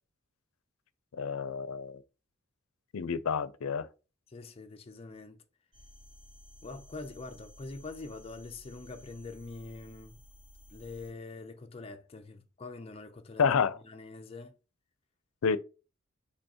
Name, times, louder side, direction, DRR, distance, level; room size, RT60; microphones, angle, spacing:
voice 1, 1.1-2.0 2.9-3.9 13.4-13.8 15.4-15.6, left 6 dB, 90° left, 0.5 m, -29 dB
voice 2, 4.3-5.4 6.6-10.2 10.7-13.4 13.8-14.5, left 3 dB, 30° left, 0.4 m, -44 dB
sound 1, 5.7-11.1, equal, 40° right, 2.4 m, -55 dB
5.5 x 3.3 x 2.8 m
head